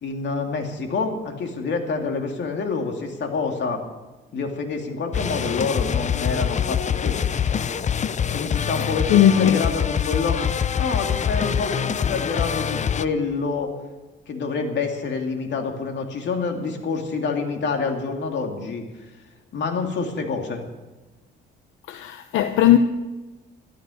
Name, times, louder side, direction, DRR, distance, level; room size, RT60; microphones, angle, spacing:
voice 1, 0.0-3.8 4.3-7.2 8.3-10.4 10.8-13.7 14.3-18.8 19.5-20.6, left 4 dB, 65° left, 2.7 m, -27 dB
sound 1, 5.1-13.0, left 8 dB, 35° left, 0.6 m, -24 dB
voice 2, 8.8-9.6 21.9-22.8, left 11 dB, 85° left, 0.8 m, -18 dB
14.0 x 13.0 x 6.4 m
cardioid pair, 90°, 20 cm